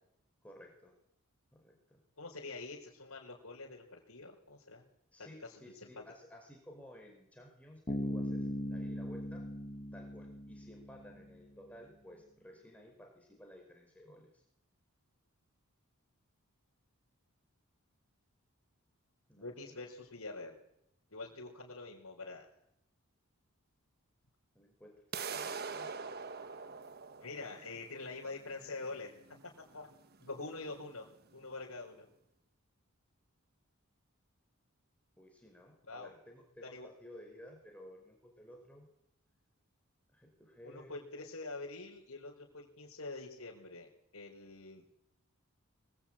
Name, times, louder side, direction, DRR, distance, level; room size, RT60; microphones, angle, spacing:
voice 1, 0.4-0.9 1.6-2.0 5.1-9.4 9.9-14.4 19.3-19.9 24.5-25.0 25.3-25.9 27.4-27.5 35.2-38.9 40.1-41.0, equal, 5° left, 1 dB, 4.9 m, -55 dB
voice 2, 2.2-4.8 5.2-5.3 5.6-5.9 19.3-20.6 21.1-22.5 27.2-29.1 29.7-29.9 30.2-31.1 31.3-32.1 35.9-36.1 36.6-36.9 40.6-43.9 44.1-44.9, left 3 dB, 80° left, -4 dB, 4.6 m, -45 dB
Bass guitar, 7.9-11.5, left 1 dB, 30° left, 1.9 m, -39 dB
sound 1, 25.1-31.1, right 5 dB, 45° right, 1.2 m, -44 dB
24.0 x 22.5 x 8.9 m, 0.80 s
head